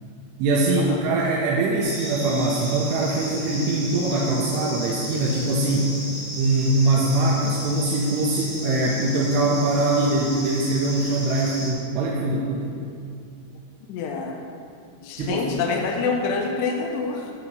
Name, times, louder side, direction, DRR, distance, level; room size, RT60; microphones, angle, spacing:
voice 1, 0.4-6.0 6.4-12.7 15.2-15.5, right 2 dB, 80° right, -3 dB, 2.8 m, -22 dB
sound 1, 1.8-11.7, equal, 35° right, 1.0 m, -34 dB
voice 2, 13.9-14.4 15.0-17.3, left 4 dB, 80° left, 1 dB, 2.7 m, -26 dB
11.0 x 4.1 x 6.1 m, 2.3 s
omnidirectional pair, 5.0 m